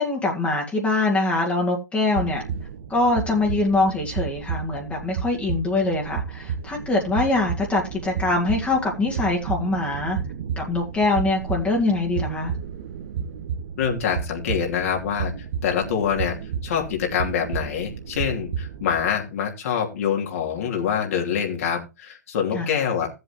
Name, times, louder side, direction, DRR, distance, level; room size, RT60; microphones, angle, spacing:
voice 1, 0.0-2.4 2.9-10.2 10.6-12.5 22.5-22.7, left 2 dB, 15° left, 2.2 m, -23 dB
sound 1, 2.1-19.1, right 7 dB, 50° right, 1.3 m, -32 dB
voice 2, 13.8-15.3 15.6-16.4 16.6-23.1, left 8 dB, 55° left, 3.0 m, -25 dB
16.0 x 7.8 x 3.0 m
figure-of-eight pair, 110°, 9 cm